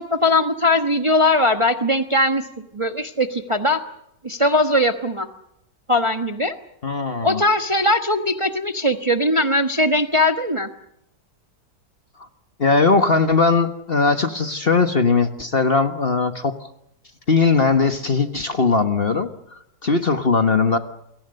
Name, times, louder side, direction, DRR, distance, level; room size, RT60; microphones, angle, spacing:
voice 1, 0.0-2.4 2.7-3.8 4.2-5.3 5.9-6.5 7.2-10.7, left 1 dB, 20° right, 7 dB, 1.1 m, -20 dB
voice 2, 6.8-7.4 12.6-16.7 17.3-19.3 19.8-20.8, left 4 dB, 35° left, 8 dB, 1.4 m, -19 dB
28.5 x 22.5 x 6.6 m, 0.79 s
omnidirectional pair, 1.8 m